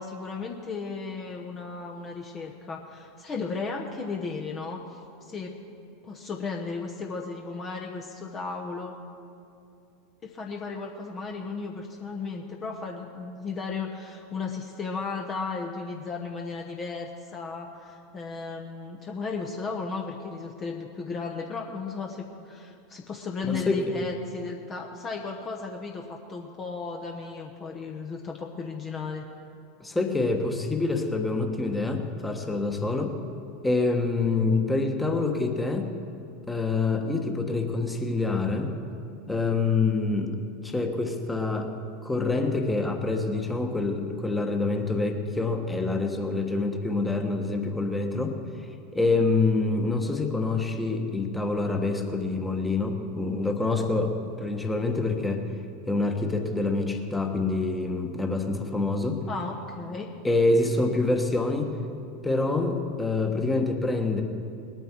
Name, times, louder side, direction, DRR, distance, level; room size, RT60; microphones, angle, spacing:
voice 1, 0.0-5.6 6.0-9.0 10.2-29.3 59.3-60.1, left 4 dB, 30° left, 1 dB, 1.0 m, -35 dB
voice 2, 23.4-24.0 29.8-33.2 33.6-35.9 36.5-38.7 39.3-40.3 40.6-41.7 42.0-48.4 48.9-55.4 55.8-59.2 60.2-61.7 62.2-64.2, left 3 dB, 10° left, 4 dB, 1.3 m, -26 dB
20.0 x 9.1 x 4.5 m, 2.6 s
figure-of-eight pair, 85°, 0 cm